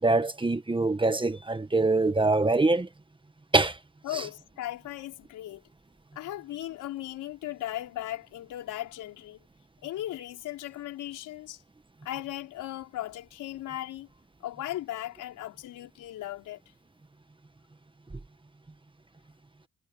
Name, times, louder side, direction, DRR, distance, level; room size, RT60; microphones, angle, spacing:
voice 1, 0.0-2.9 3.5-3.8 4.1-4.2, right 2 dB, 15° right, 1.6 m, -24 dB
voice 2, 4.0-5.6 6.1-9.4 9.8-11.6 12.0-14.1 14.4-16.6, left 14 dB, 90° left, 4.6 m, -37 dB
cardioid pair, 90°, 30 cm